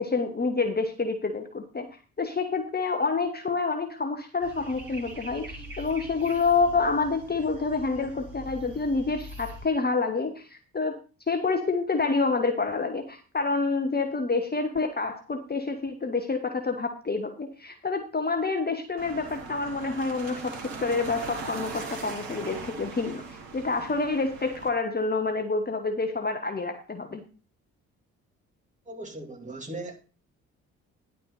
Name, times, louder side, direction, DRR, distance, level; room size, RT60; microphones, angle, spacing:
voice 1, 0.0-1.9 2.2-11.0 11.3-23.2 23.5-27.2, left 4 dB, 25° left, 1.3 m, -28 dB
sound 1, 4.4-9.7, equal, 80° right, 1.5 m, -43 dB
sound 2, 19.0-24.7, right 4 dB, 60° right, 1.7 m, -39 dB
voice 2, 28.9-30.0, right 2 dB, 20° right, 2.7 m, -38 dB
10.5 x 5.5 x 5.6 m
figure-of-eight pair, 45°, 40 cm